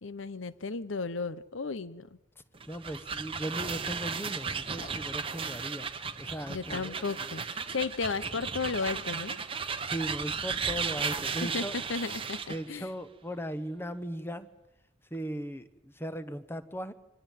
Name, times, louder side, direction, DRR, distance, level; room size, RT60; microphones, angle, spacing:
voice 1, 0.0-2.1 6.5-9.4 11.4-12.4 12.7-12.9, left 4 dB, 80° left, 16 dB, 0.9 m, -34 dB
sound 1, 2.5-12.6, right 6 dB, 25° right, 1.0 m, -35 dB
voice 2, 2.7-5.9 6.2-6.9 9.9-11.7 12.5-14.5 15.1-16.9, equal, 10° left, 12 dB, 1.1 m, -37 dB
sound 2, 4.7-13.5, left 2 dB, 35° left, 2.2 m, -55 dB
25.0 x 17.5 x 9.2 m, 0.90 s
head